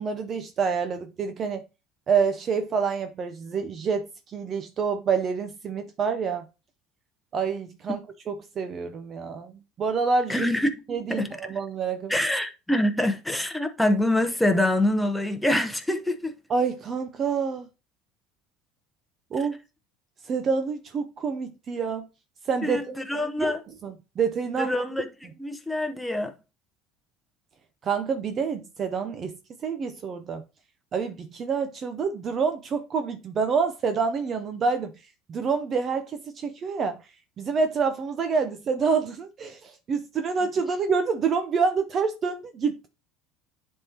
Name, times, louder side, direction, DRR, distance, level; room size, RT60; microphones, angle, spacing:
voice 1, 0.0-1.6 2.1-6.5 7.3-8.0 8.3-9.5 9.8-10.5 10.9-12.1 16.5-17.7 19.3-19.6 20.2-22.1 22.4-23.0 23.4-23.5 23.8-24.7 27.8-29.4 29.6-30.4 30.9-34.9 35.3-37.0 37.4-42.9, right 5 dB, 35° right, 0.5 m, -27 dB
voice 2, 10.3-10.8 11.1-11.3 12.1-16.4 22.6-23.6 24.6-25.1 25.4-26.3, left 1 dB, 5° left, 0.8 m, -25 dB
10.5 x 3.6 x 2.8 m
cardioid pair, 135°, 0 cm